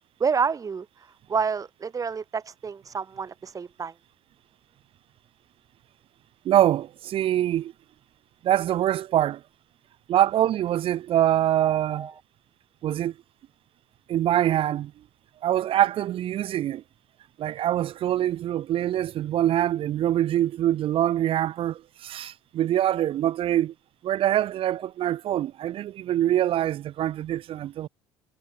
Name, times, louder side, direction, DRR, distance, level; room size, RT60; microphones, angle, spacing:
voice 1, 0.2-0.9 1.3-3.9 11.6-12.1, right 6 dB, 30° right, 1.1 m, -29 dB
voice 2, 6.5-7.7 8.4-9.4 10.1-12.1 12.8-13.1 14.1-14.9 15.4-16.8 17.4-23.7 24.0-27.9, right 12 dB, 50° right, 0.5 m, -24 dB
supercardioid pair, 90°, 12 cm